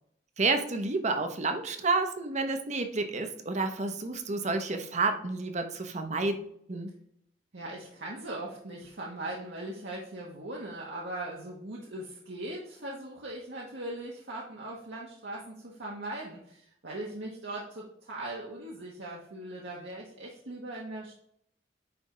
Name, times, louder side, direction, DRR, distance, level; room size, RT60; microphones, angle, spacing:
voice 1, 0.4-6.4 6.7-6.9, right 3 dB, 40° right, 7 dB, 0.9 m, -30 dB
voice 2, 7.5-21.2, right 1 dB, 75° right, -3 dB, 1.2 m, -40 dB
9.6 x 3.5 x 3.8 m, 0.68 s
head